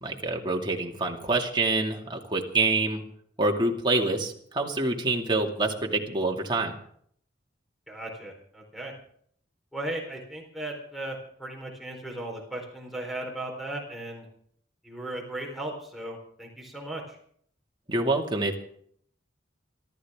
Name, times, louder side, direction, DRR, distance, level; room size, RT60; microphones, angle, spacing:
voice 1, 0.0-3.0 3.4-6.8 17.9-18.6, right 2 dB, 25° right, 1 dB, 2.4 m, -26 dB
voice 2, 7.9-8.9 9.7-14.3 14.8-17.2, right 1 dB, ahead, -1 dB, 4.2 m, -36 dB
25.5 x 14.0 x 3.7 m, 0.63 s
head